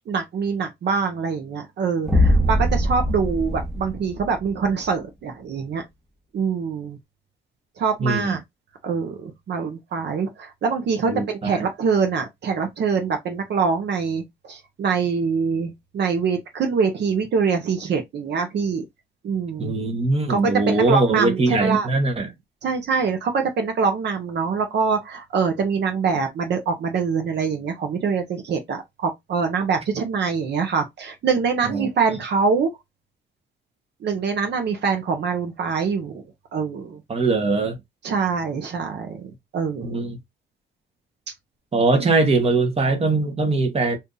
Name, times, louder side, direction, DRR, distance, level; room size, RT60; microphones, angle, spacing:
voice 1, 0.1-5.8 6.3-7.0 7.8-8.4 8.8-14.2 14.5-18.8 19.2-19.7 20.3-21.9 22.6-32.7 34.0-36.2 36.5-37.0 38.0-39.2 39.5-40.0, right 5 dB, 60° right, 0.9 m, -24 dB
sound 1, 2.1-4.7, equal, 5° right, 1.0 m, -21 dB
voice 2, 8.0-8.4 11.1-11.7 19.6-22.3 31.6-31.9 37.1-37.8 39.8-40.2 41.7-44.0, right 3 dB, 30° right, 1.1 m, -21 dB
2.7 x 2.6 x 3.7 m
cardioid pair, 90°, 20 cm